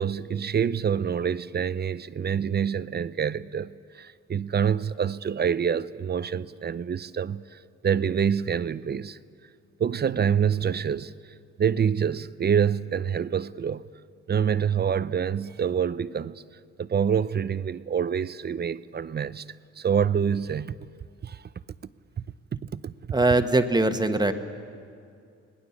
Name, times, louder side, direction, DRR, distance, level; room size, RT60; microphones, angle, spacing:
voice 1, 0.0-7.4 7.8-9.2 9.8-11.1 11.6-13.9 14.3-16.4 16.8-19.4 19.8-20.8 21.2-21.4 22.5-22.9, right 7 dB, 35° right, 0.6 m, -26 dB
voice 2, 23.1-24.3, right 2 dB, 15° right, 1.3 m, -21 dB
26.0 x 19.5 x 7.2 m
cardioid pair, 90°, 30 cm